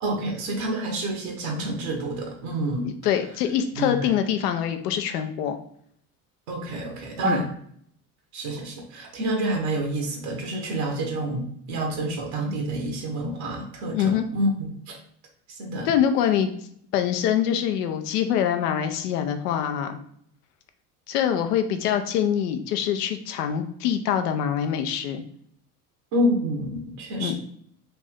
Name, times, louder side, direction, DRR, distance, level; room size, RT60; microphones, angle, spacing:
voice 1, 0.0-2.9 3.8-4.0 6.5-7.5 8.3-15.0 15.5-15.9 26.1-27.4, right 1 dB, 65° right, 1 dB, 1.0 m, -28 dB
voice 2, 2.8-5.6 7.2-7.4 13.9-14.2 15.8-16.5 16.9-20.0 21.1-25.2 27.2-27.4, left 9 dB, 75° left, 7 dB, 0.7 m, -24 dB
3.4 x 2.6 x 3.4 m, 0.66 s
hypercardioid pair, 70°, 46 cm